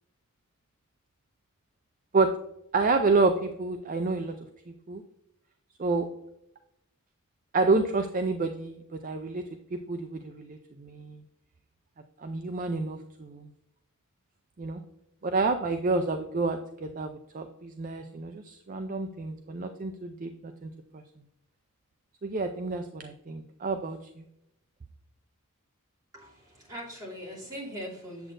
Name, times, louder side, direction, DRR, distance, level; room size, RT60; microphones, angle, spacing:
voice 1, 2.7-4.3 4.9-5.0 5.8-6.1 7.5-9.5 9.7-11.2 12.2-13.5 14.6-14.8 15.2-21.0 22.2-24.2, right 3 dB, 35° right, 7 dB, 0.4 m, -29 dB
voice 2, 26.1-28.3, equal, 15° right, -7 dB, 2.9 m, -41 dB
8.2 x 7.6 x 2.6 m, 0.81 s
head